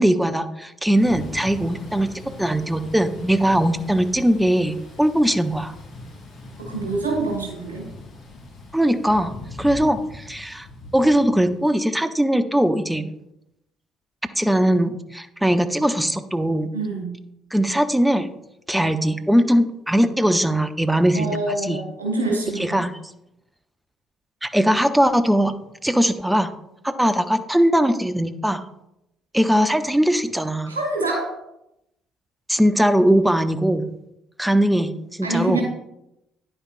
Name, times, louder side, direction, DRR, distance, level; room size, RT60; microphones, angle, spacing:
voice 1, 0.0-2.1 2.4-5.7 8.7-9.3 9.6-10.7 10.9-13.1 14.4-16.7 17.5-18.3 18.7-21.3 21.6-21.8 22.6-22.9 24.4-26.5 26.8-28.6 29.3-30.7 32.5-33.8 34.4-35.6, equal, 5° right, 10 dB, 0.7 m, -20 dB
Thunder / Rain, 0.9-11.7, left 2 dB, 55° left, 2.6 m, -40 dB
voice 2, 6.6-7.9 16.7-17.1 21.1-22.8 30.7-31.3 35.2-35.6, right 2 dB, 80° right, -1 dB, 2.4 m, -26 dB
9.7 x 8.7 x 2.6 m, 0.85 s
figure-of-eight pair, 45°, 0 cm